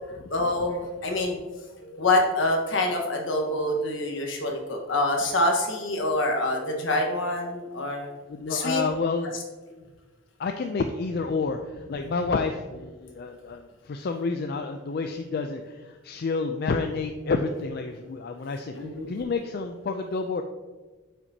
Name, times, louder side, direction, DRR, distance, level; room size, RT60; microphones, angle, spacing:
voice 1, 0.3-1.4 1.8-8.1 8.5-8.8 18.7-19.1, left 1 dB, 70° left, 1 dB, 1.3 m, -26 dB
voice 2, 8.3-9.4 10.4-18.7 19.1-20.4, left 4 dB, 50° left, 6 dB, 0.4 m, -29 dB
8.7 x 5.8 x 2.8 m, 1.3 s
head